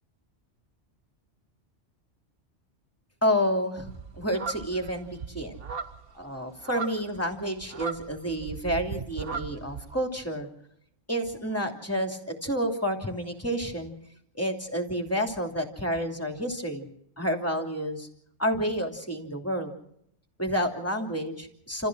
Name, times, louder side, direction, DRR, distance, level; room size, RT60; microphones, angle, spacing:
voice 1, 3.2-3.9 4.2-5.6 6.1-10.5 11.1-13.9 14.3-16.9 17.2-18.1 18.4-19.7 20.4-21.9, equal, 10° left, 4 dB, 3.0 m, -29 dB
sound 1, 3.9-10.0, right 5 dB, 55° right, 1.3 m, -38 dB
29.0 x 15.0 x 6.3 m, 0.74 s
omnidirectional pair, 1.2 m